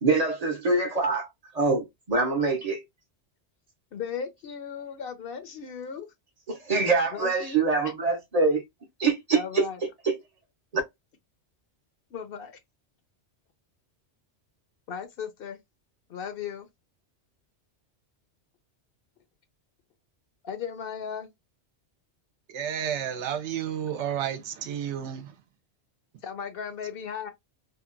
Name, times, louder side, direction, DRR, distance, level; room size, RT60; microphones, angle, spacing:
voice 1, 0.0-1.3 1.5-2.8 6.5-8.6 9.0-9.7 10.1-10.2, right 3 dB, 45° right, 0.6 m, -24 dB
voice 2, 3.9-6.1 7.1-7.9 9.3-9.8 12.1-12.5 14.9-15.6 16.1-16.7 20.4-21.3 26.2-27.3, left 7 dB, 65° left, 0.7 m, -36 dB
voice 3, 22.5-25.4, right 9 dB, 80° right, 0.9 m, -31 dB
2.7 x 2.1 x 2.4 m
omnidirectional pair, 1.2 m